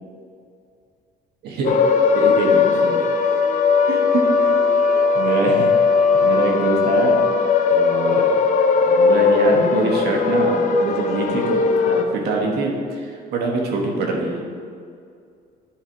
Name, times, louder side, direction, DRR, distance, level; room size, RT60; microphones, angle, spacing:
voice 1, 1.4-1.7 2.1-3.0 3.9-4.5 5.1-5.7 6.1-7.2 7.7-8.3 8.8-14.4, right 3 dB, 75° right, 0 dB, 1.5 m, -24 dB
sound 1, 1.6-12.0, left 5 dB, 50° left, 0.6 m, -18 dB
10.5 x 3.6 x 4.7 m, 2.3 s
cardioid pair, 110°, 17 cm